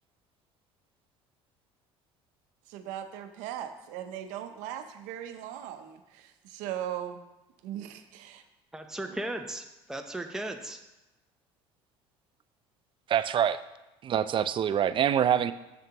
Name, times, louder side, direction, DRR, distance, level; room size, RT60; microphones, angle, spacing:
voice 1, 2.7-7.2 7.6-8.4 9.1-9.2, right 10 dB, 75° right, 8 dB, 0.7 m, -39 dB
voice 2, 8.7-10.8, right 1 dB, 5° right, 4 dB, 0.7 m, -36 dB
voice 3, 13.1-13.6 14.0-15.5, right 9 dB, 40° right, 13 dB, 0.4 m, -25 dB
8.9 x 6.9 x 2.9 m, 1.0 s
supercardioid pair, 80°, 13 cm